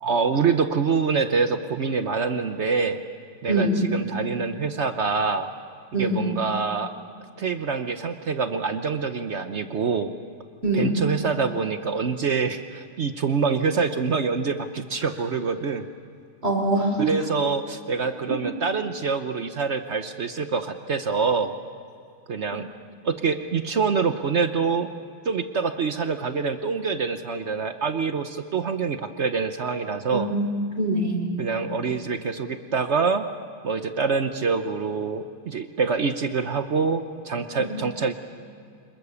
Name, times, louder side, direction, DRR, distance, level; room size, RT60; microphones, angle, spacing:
voice 1, 0.0-3.0 3.4-5.5 6.0-6.9 7.4-10.1 10.7-15.9 17.0-21.6 22.3-22.7 23.0-24.9 25.2-30.3 31.4-33.3 33.6-38.1, right 5 dB, 65° right, 8 dB, 0.6 m, -25 dB
voice 2, 3.5-3.8 5.9-6.3 10.6-10.9 16.4-17.1 30.1-30.5 30.8-31.2 37.6-37.7, right 1 dB, 25° right, 2 dB, 4.0 m, -23 dB
27.0 x 21.5 x 7.1 m, 2.4 s
omnidirectional pair, 2.4 m